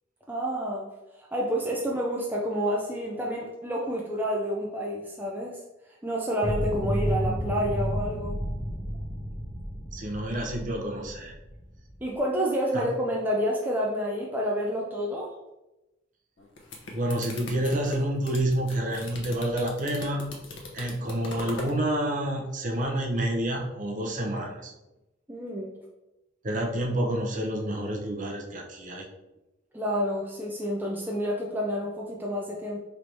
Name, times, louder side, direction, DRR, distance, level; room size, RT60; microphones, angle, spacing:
voice 1, 0.3-0.9 1.2-5.6 6.0-8.4 12.0-15.3 25.3-25.8 29.7-32.8, equal, 10° right, -3 dB, 0.4 m, -29 dB
sound 1, 6.4-12.1, equal, 25° left, 0.8 m, -31 dB
voice 2, 9.9-11.4 12.7-12.9 16.9-20.3 20.7-24.7 26.4-29.1, right 1 dB, 40° right, 1 dB, 0.7 m, -29 dB
sound 2, 16.4-21.8, left 2 dB, 65° left, 0.8 m, -40 dB
3.3 x 2.7 x 4.6 m, 0.97 s
head